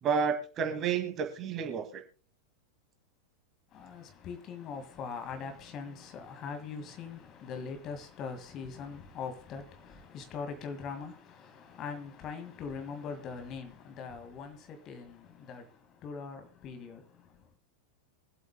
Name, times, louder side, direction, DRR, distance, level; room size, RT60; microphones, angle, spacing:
voice 1, 0.0-2.0, right 6 dB, 30° right, 2.1 m, -30 dB
voice 2, 3.7-17.5, left 5 dB, 35° left, 2.0 m, -42 dB
24.0 x 8.1 x 2.2 m
figure-of-eight pair, 90°, 0 cm